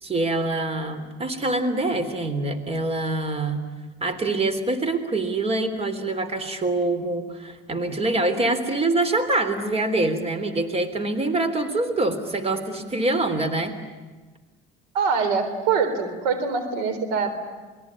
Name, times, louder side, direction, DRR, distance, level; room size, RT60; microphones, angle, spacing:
voice 1, 0.0-3.6 4.0-13.7, right 2 dB, 30° right, 11 dB, 3.4 m, -25 dB
voice 2, 14.9-17.3, right 5 dB, 85° right, 9 dB, 4.1 m, -24 dB
28.0 x 21.5 x 9.8 m, 1.3 s
supercardioid pair, 90°, 21 cm